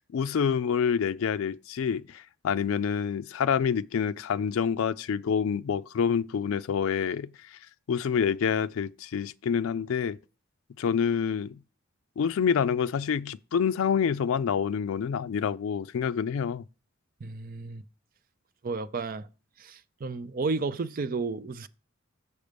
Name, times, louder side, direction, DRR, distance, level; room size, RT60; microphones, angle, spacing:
voice 1, 0.0-7.6 7.9-10.2 10.8-11.6 12.2-16.6, left 7 dB, 85° left, 0.4 m, -27 dB
voice 2, 17.2-17.8 18.6-19.3 19.6-21.7, right 4 dB, 45° right, 0.5 m, -32 dB
6.7 x 6.5 x 5.1 m
head